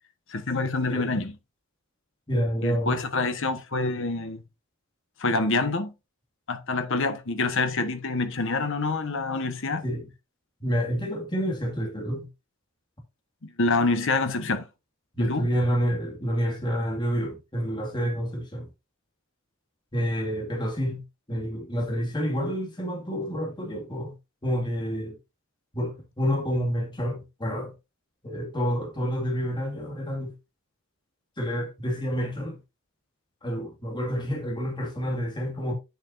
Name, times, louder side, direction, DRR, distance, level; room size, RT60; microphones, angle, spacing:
voice 1, 0.3-1.3 2.6-4.4 5.2-5.9 6.5-9.8 13.4-14.6 15.2-15.5, left 3 dB, 65° left, 1.3 m, -26 dB
voice 2, 0.9-1.2 2.3-3.0 9.8-10.1 10.6-12.3 15.1-18.7 19.9-21.0 21.3-24.2 24.4-25.2 25.7-27.7 28.2-30.3 31.4-32.6 33.4-35.7, equal, 20° left, 2.2 m, -28 dB
8.4 x 7.1 x 2.6 m
head